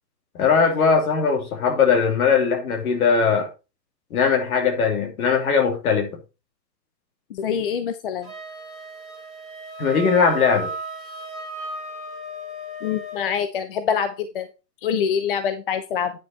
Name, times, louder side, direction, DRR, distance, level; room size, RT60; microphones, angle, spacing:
voice 1, 0.3-3.5 4.1-6.1 9.8-10.7, left 6 dB, 60° left, 2.5 m, -20 dB
voice 2, 7.3-8.3 12.8-14.5 14.8-16.1, left 7 dB, 35° left, 0.6 m, -25 dB
Wind instrument woodwind instrument, 8.2-13.4, right 1 dB, 90° left, 5.6 m, -35 dB
9.4 x 4.9 x 4.2 m
hypercardioid pair, 150°, 50 cm